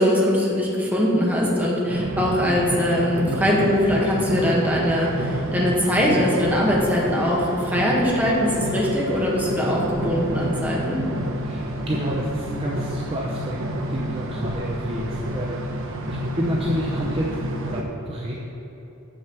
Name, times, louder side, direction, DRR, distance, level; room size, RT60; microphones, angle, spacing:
voice 1, 0.0-11.0, equal, 10° right, -4 dB, 1.4 m, -21 dB
sound 1, 1.9-17.8, right 1 dB, 65° right, 0.8 m, -29 dB
voice 2, 11.4-13.6 13.9-17.4 17.7-18.3, equal, 25° right, -3 dB, 0.6 m, -29 dB
7.2 x 6.4 x 6.0 m, 3.0 s
head